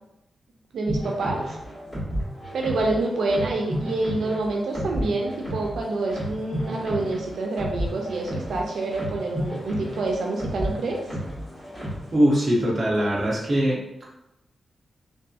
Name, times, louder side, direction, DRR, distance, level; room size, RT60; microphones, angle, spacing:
voice 1, 0.7-1.6 2.5-11.0, right 2 dB, 85° right, 0 dB, 0.4 m, -27 dB
sound 1, 0.9-12.1, equal, 15° left, 1.4 m, -32 dB
voice 2, 12.1-14.1, equal, 25° right, -5 dB, 0.6 m, -22 dB
2.6 x 2.2 x 2.3 m, 0.89 s
wide cardioid pair, 160°, 0 cm